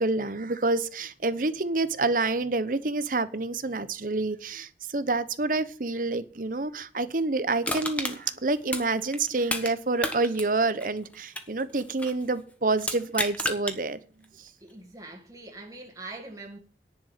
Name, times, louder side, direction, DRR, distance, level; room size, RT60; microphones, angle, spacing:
voice 1, 0.0-14.0 14.4-14.5, right 3 dB, 50° right, 0.9 m, -28 dB
Crushing, 7.6-9.7 10.0-12.2 12.8-13.8 14.2-14.3, left 1 dB, 10° left, 1.2 m, -32 dB
voice 2, 14.6-16.6, right 2 dB, 20° right, 1.7 m, -43 dB
10.5 x 6.2 x 8.9 m
head